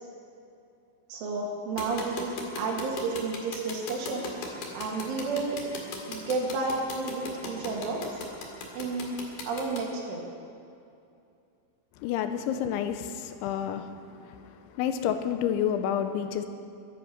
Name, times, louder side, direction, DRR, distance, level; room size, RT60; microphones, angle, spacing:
voice 1, 1.1-4.3 4.7-5.6 6.1-8.3 8.7-9.2 9.5-10.2, right 3 dB, 85° right, -1 dB, 4.8 m, -31 dB
sound 1, 1.8-9.8, left 4 dB, 55° left, 3.3 m, -37 dB
voice 2, 12.0-13.9 14.6-16.5, left 9 dB, 85° left, 8 dB, 3.1 m, -29 dB
22.0 x 11.0 x 5.8 m, 2.6 s
omnidirectional pair, 5.5 m